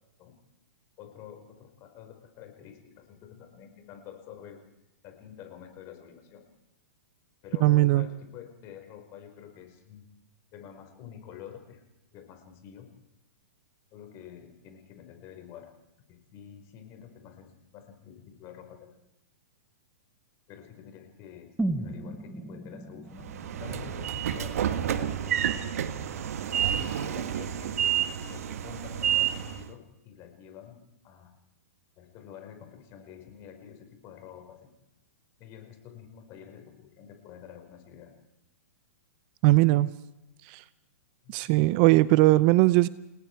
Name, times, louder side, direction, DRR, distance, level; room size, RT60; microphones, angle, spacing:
voice 1, 1.0-4.6 5.0-6.4 7.4-10.0 10.5-11.8 12.1-12.9 13.9-15.7 16.1-18.9 20.5-23.3 23.6-25.5 26.2-31.3 32.0-34.7 35.4-38.1 41.2-41.4, left 9 dB, 35° left, 5 dB, 5.0 m, -48 dB
voice 2, 7.6-8.1 39.4-39.9 40.5-40.6 41.3-42.9, right 18 dB, 40° right, 18 dB, 0.7 m, -20 dB
sound 1, 21.6-25.6 25.9-26.0, right 2 dB, 5° right, 1.2 m, -36 dB
Train / Sliding door, 23.2-29.7, right 10 dB, 70° right, 1.5 m, -29 dB
30.0 x 18.5 x 4.8 m, 0.90 s
hypercardioid pair, 135°, 8 cm